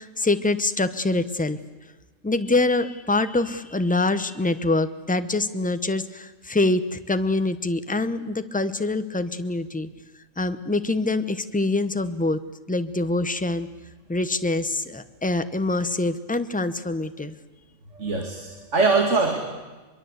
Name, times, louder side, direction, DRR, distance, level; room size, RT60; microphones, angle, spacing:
voice 1, 0.0-1.6 2.2-9.9 10.4-12.4 12.7-13.7 14.1-17.3, left 2 dB, 10° left, 11 dB, 0.8 m, -25 dB
voice 2, 17.9-19.4, right 3 dB, 75° right, 3 dB, 2.6 m, -22 dB
24.0 x 22.5 x 8.1 m, 1.3 s
omnidirectional pair, 1.2 m